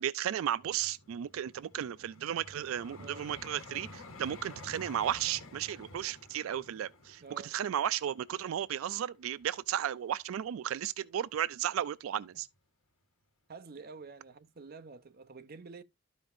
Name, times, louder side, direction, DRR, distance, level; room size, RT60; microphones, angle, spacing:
voice 1, 0.0-12.5, right 10 dB, 90° right, 0.3 m, -34 dB
Vehicle, 0.6-9.7 10.3-10.5, left 2 dB, 85° left, 1.3 m, -51 dB
voice 2, 7.2-7.5 13.5-15.8, right 4 dB, 50° right, 0.6 m, -49 dB
12.5 x 5.2 x 2.5 m
head